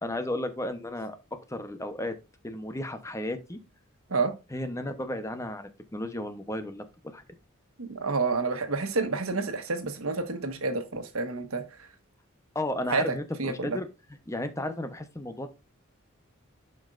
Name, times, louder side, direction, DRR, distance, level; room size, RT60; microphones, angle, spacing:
voice 1, 0.0-1.2 1.5-2.1 2.4-3.6 4.5-6.9 7.1-7.2 12.5-13.9 14.3-15.5, left 1 dB, 15° left, 0.9 m, -33 dB
voice 2, 7.8-11.9 12.9-13.8, right 4 dB, 85° right, 1.4 m, -29 dB
11.0 x 5.4 x 2.5 m
head